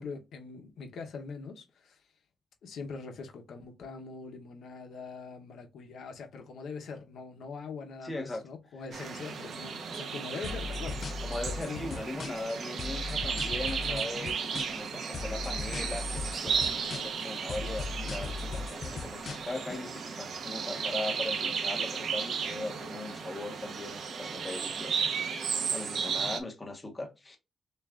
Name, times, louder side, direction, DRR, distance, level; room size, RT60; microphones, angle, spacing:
voice 1, 0.0-2.0 2.6-11.0 11.5-11.9 13.8-14.3 25.7-26.3, left 4 dB, 85° left, 0.8 m, -43 dB
voice 2, 8.0-8.4 11.2-27.4, left 2 dB, 15° left, 1.0 m, -39 dB
sound 1, 8.9-26.4, right 6 dB, 60° right, 0.7 m, -34 dB
sound 2, 10.4-12.5 12.8-14.9 15.1-17.2 17.5-19.8, left 4 dB, 40° left, 0.3 m, -38 dB
6.4 x 2.4 x 2.4 m
wide cardioid pair, 165°, 0 cm